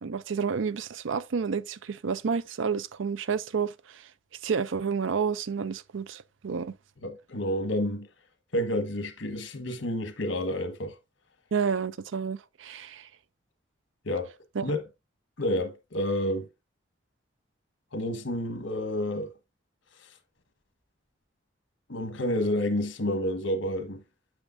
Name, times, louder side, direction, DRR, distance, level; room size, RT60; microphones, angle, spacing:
voice 1, 0.0-4.0 4.4-6.7 11.5-13.1 14.6-14.7, right 6 dB, 85° right, 0.5 m, -30 dB
voice 2, 7.0-8.1 8.5-10.9 14.0-14.3 14.6-14.8 15.4-16.5 17.9-19.3 21.9-24.0, left 1 dB, 90° left, 1.4 m, -29 dB
8.6 x 6.2 x 2.6 m
head